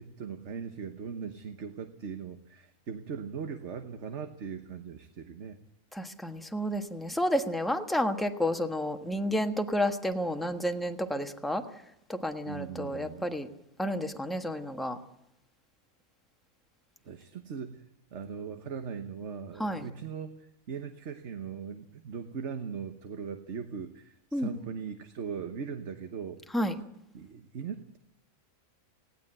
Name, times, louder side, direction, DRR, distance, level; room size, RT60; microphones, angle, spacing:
voice 1, 0.0-5.6 12.5-13.3 17.0-17.8 18.1-26.4 27.1-28.0, right 6 dB, 55° right, 8 dB, 1.4 m, -39 dB
voice 2, 5.9-11.6 12.1-13.5 13.8-15.0 19.6-19.9 24.3-24.5 26.5-26.7, equal, ahead, 6 dB, 1.3 m, -30 dB
19.0 x 17.0 x 8.9 m, 0.80 s
omnidirectional pair, 1.5 m